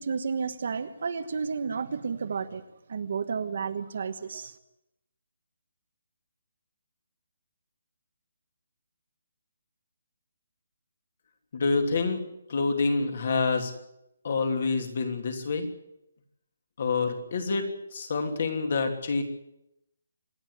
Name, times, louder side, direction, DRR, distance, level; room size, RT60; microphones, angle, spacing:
voice 1, 0.0-2.6 2.9-4.5, right 5 dB, 45° right, 9 dB, 1.4 m, -31 dB
voice 2, 11.5-12.2 12.5-13.7 14.2-15.7 16.8-19.2, left 4 dB, 40° left, 5 dB, 3.0 m, -27 dB
26.0 x 10.5 x 9.6 m, 0.86 s
hypercardioid pair, 175°, 0 cm